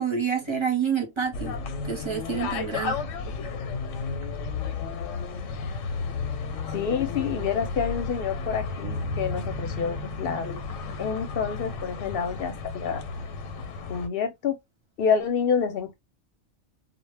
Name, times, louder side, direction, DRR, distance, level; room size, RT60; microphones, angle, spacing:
voice 1, 0.0-1.6 1.8-3.0, right 7 dB, 30° right, 0.6 m, -28 dB
sound 1, 1.3-14.1, left 4 dB, 90° left, 0.9 m, -33 dB
voice 2, 6.7-10.6 11.0-13.0 13.9-14.6 15.0-15.9, left 6 dB, 60° left, 0.7 m, -28 dB
sound 2, 8.8-12.6, equal, 60° right, 0.7 m, -38 dB
2.1 x 2.1 x 3.2 m
omnidirectional pair, 1.3 m